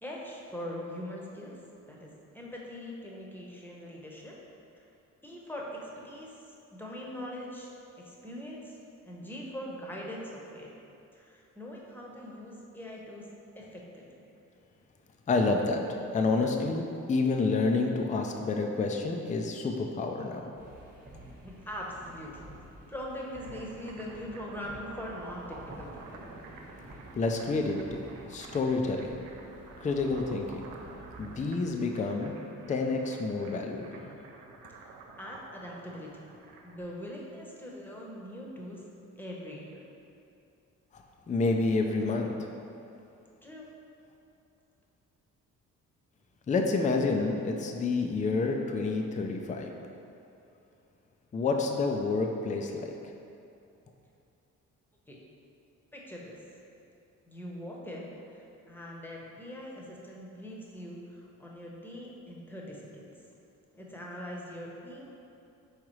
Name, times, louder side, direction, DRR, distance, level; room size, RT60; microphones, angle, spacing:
voice 1, 0.0-1.6 1.9-4.3 5.2-6.4 6.7-7.7 8.0-8.8 9.0-10.7 11.1-13.3 13.5-14.3 21.4-22.5 22.9-26.2 34.8-36.1 36.6-38.8 39.2-39.9 43.4-43.7 55.1-55.2 55.9-56.4 57.2-63.1 63.7-65.1, equal, 5° left, -3 dB, 0.9 m, -42 dB
voice 2, 15.3-15.9 16.1-20.5 27.1-28.0 28.3-29.2 29.8-30.7 31.2-32.4 32.7-34.1 40.9-42.5 46.5-49.7 51.3-52.9, left 3 dB, 20° left, 3 dB, 0.4 m, -29 dB
sound 1, 20.6-31.5, right 1 dB, 25° right, 1.3 m, -51 dB
sound 2, 23.1-36.9, right 3 dB, 85° right, 0.5 m, -50 dB
4.9 x 3.6 x 3.1 m, 2.7 s
supercardioid pair, 60°, 34 cm